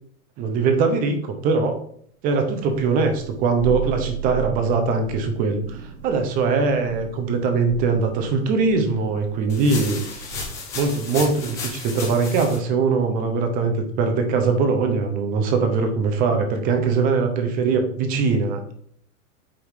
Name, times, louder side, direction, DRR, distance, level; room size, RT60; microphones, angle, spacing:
voice 1, 0.4-1.8 2.2-10.0 10.7-18.6, right 4 dB, 20° right, 5 dB, 0.9 m, -21 dB
Thunder, 2.6-11.0, right 11 dB, 45° right, 1.1 m, -36 dB
sound 1, 9.5-12.6, left 4 dB, 5° left, 0.4 m, -33 dB
8.6 x 3.8 x 4.8 m, 0.65 s
supercardioid pair, 165°, 46 cm